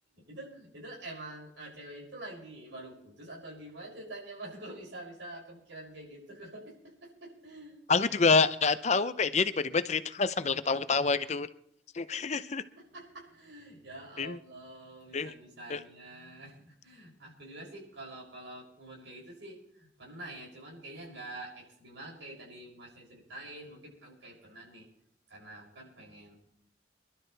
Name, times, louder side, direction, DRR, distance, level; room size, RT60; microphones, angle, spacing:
voice 1, 0.1-7.8 12.1-12.3 12.7-24.9 25.3-26.4, right 1 dB, 80° right, -3 dB, 6.9 m, -47 dB
voice 2, 7.9-11.5 11.9-12.6 14.2-14.4 15.1-15.3 15.7-15.8, left 4 dB, 35° left, 13 dB, 0.6 m, -27 dB
25.5 x 12.0 x 3.4 m, 0.74 s
head